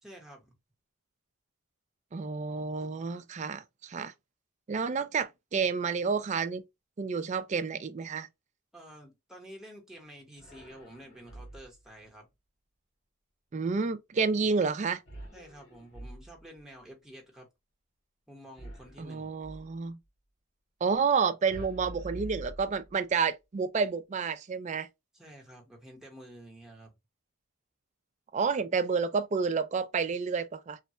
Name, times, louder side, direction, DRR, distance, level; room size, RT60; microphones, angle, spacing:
voice 1, 0.0-0.6 8.7-12.3 15.3-17.5 18.3-19.3 25.1-26.9, equal, 5° right, 0.9 m, -50 dB
voice 2, 2.1-4.1 4.7-6.6 7.0-8.3 13.5-15.0 19.0-20.0 20.8-24.9 28.3-30.8, right 5 dB, 35° right, 0.3 m, -30 dB
sound 1, 10.4-11.9 15.0-16.6 18.5-19.8 21.5-23.2, right 1 dB, 65° left, 1.5 m, -46 dB
3.1 x 2.1 x 2.7 m
head